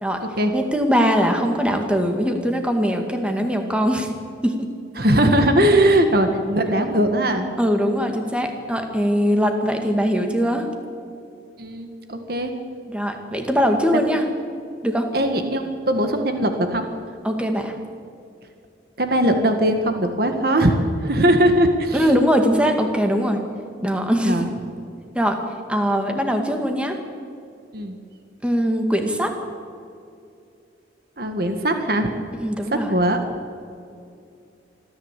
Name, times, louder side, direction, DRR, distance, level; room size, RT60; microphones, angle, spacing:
voice 1, 0.5-4.1 4.4-4.7 7.6-10.7 12.9-14.2 14.8-15.1 17.2-17.8 21.9-23.4 23.8-24.5 25.2-25.4 25.7-27.0 28.4-29.3 32.4-32.9, equal, 5° right, 4 dB, 2.0 m, -21 dB
voice 2, 5.0-7.5 11.6-12.5 15.1-16.9 19.0-22.1 24.2-24.5 27.7-28.0 31.2-32.1 32.7-33.2, right 1 dB, 55° right, 6 dB, 1.9 m, -20 dB
25.5 x 14.0 x 8.4 m, 2.5 s
head